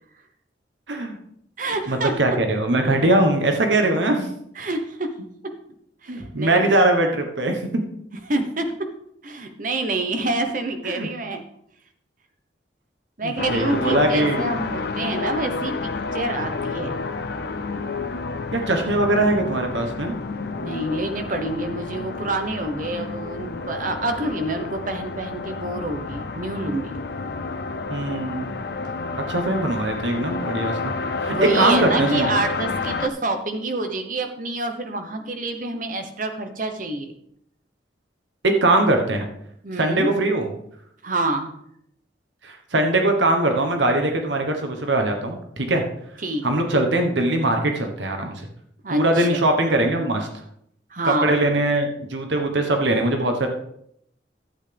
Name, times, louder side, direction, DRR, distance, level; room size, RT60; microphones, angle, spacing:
voice 1, 0.9-1.2 1.9-4.3 6.1-7.8 10.8-11.1 13.2-14.5 18.5-20.1 27.9-28.5 29.3-30.9 31.2-32.3 38.4-39.3 39.8-40.5 42.4-45.8 46.4-48.3 48.9-50.3 51.0-53.5, right 2 dB, 75° right, 4 dB, 1.3 m, -21 dB
voice 2, 1.6-2.1 4.6-5.1 5.4-5.5 6.0-6.7 8.3-8.7 9.2-11.4 13.2-17.0 20.6-26.9 31.3-37.1 39.6-40.1 41.0-41.5 46.2-46.4 48.8-49.4 50.9-51.4, right 2 dB, 45° right, 6 dB, 1.0 m, -27 dB
sound 1, 13.4-33.1, left 4 dB, 60° left, 0.5 m, -30 dB
12.0 x 8.1 x 3.5 m, 0.72 s
head